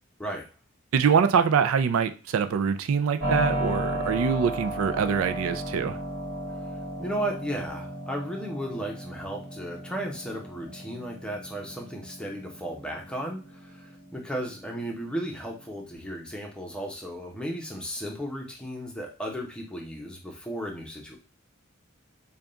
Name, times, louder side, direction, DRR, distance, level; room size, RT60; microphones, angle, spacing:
voice 1, 0.9-6.0, right 6 dB, 80° right, 10 dB, 0.4 m, -24 dB
Keyboard (musical), 3.2-15.9, right 1 dB, 60° right, 1.4 m, -35 dB
voice 2, 7.0-21.2, right 1 dB, 5° left, 0 dB, 0.7 m, -35 dB
3.5 x 2.3 x 3.8 m, 0.34 s
head